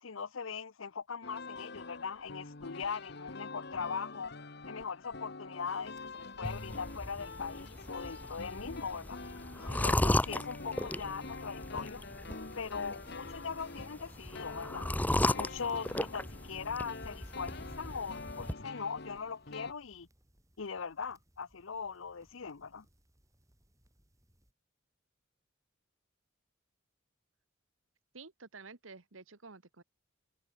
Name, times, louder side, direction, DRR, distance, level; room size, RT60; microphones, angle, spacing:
voice 1, 0.0-4.3 4.7-9.2 9.7-12.0 12.5-15.0 15.3-20.1 20.6-22.8, left 5 dB, 80° left, 0.8 m, -40 dB
Instrumental jazz - rhytm and solo guitars, 1.2-19.7, left 3 dB, 55° left, 1.6 m, -46 dB
sound 1, 5.6-24.5, equal, 15° right, 5.3 m, -69 dB
sound 2, 6.4-18.5, left 1 dB, 10° left, 0.8 m, -36 dB
voice 2, 28.1-29.8, right 4 dB, 80° right, 1.5 m, -51 dB
open air
head